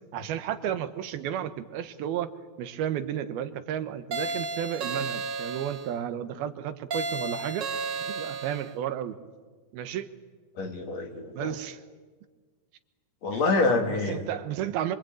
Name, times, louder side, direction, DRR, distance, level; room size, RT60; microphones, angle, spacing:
voice 1, 0.1-2.3 2.6-7.7 8.1-9.2 9.7-10.1 11.4-11.8 13.3-13.4 13.9-15.0, right 10 dB, 80° right, 11 dB, 3.0 m, -32 dB
sound 1, 4.1-5.9 6.9-8.7, right 3 dB, 60° right, 1.1 m, -33 dB
voice 2, 10.6-11.6 13.2-14.2, left 3 dB, 50° left, 4 dB, 3.2 m, -26 dB
26.0 x 23.5 x 9.0 m, 1.4 s
omnidirectional pair, 4.3 m